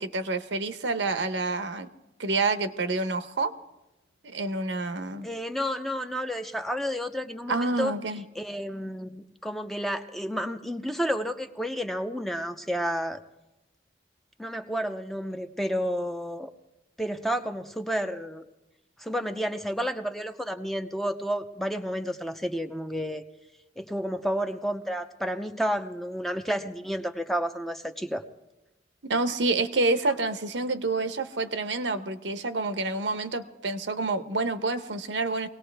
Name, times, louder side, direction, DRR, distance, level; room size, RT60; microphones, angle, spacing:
voice 1, 0.0-1.9 2.2-3.5 4.2-5.3 7.5-8.2 29.0-35.5, right 3 dB, 90° right, 10 dB, 0.9 m, -28 dB
voice 2, 5.2-7.9 8.4-13.2 14.4-16.5 17.0-18.4 19.0-23.2 23.8-28.2, equal, ahead, 6 dB, 0.6 m, -31 dB
23.5 x 18.0 x 3.4 m, 0.99 s
head